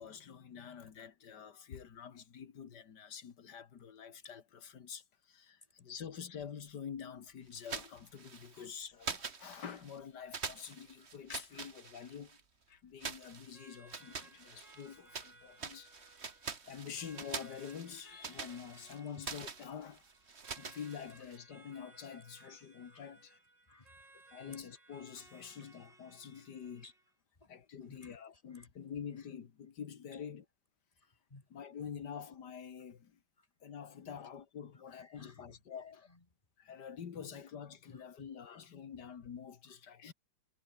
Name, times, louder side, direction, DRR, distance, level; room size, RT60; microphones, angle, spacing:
voice 1, 0.0-12.4 12.7-15.9 16.6-20.0 20.5-23.4 24.3-26.9 27.5-30.4 31.5-33.2 33.6-36.1 36.6-40.1, left 7 dB, 65° left, 2.2 m, -47 dB
sound 1, 7.6-8.7 9.0-10.0 10.3-12.4 13.0-15.3 15.6-21.4, right 5 dB, 35° right, 1.9 m, -45 dB
sound 2, 13.5-27.1, right 2 dB, 75° right, 7.7 m, -61 dB
voice 2, 22.4-23.4 23.7-24.6 25.4-25.7 26.6-26.9 27.4-27.5 27.8-28.7 30.1-30.2 31.0-31.5 33.4-33.5 34.2-34.3 34.7-36.3 37.1-37.4 37.9-38.6, left 2 dB, 20° left, 2.1 m, -60 dB
omnidirectional pair, 2.0 m